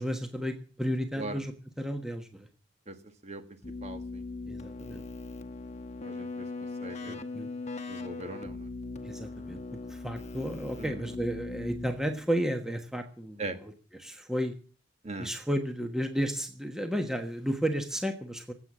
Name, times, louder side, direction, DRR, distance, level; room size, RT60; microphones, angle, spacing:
voice 1, 0.0-2.5 4.5-5.0 7.0-7.5 9.0-9.6 9.9-13.7 14.0-14.5 15.2-18.5, equal, 5° right, 5 dB, 1.2 m, -33 dB
Keyboard (musical), 3.6-12.3, left 3 dB, 35° left, 1.2 m, -40 dB
voice 2, 3.8-4.2 6.0-6.5 6.8-7.2 7.9-8.7 10.8-10.9 13.4-13.6 15.0-15.3, right 2 dB, 35° right, 8 dB, 1.8 m, -39 dB
20.5 x 8.4 x 7.4 m, 0.40 s
head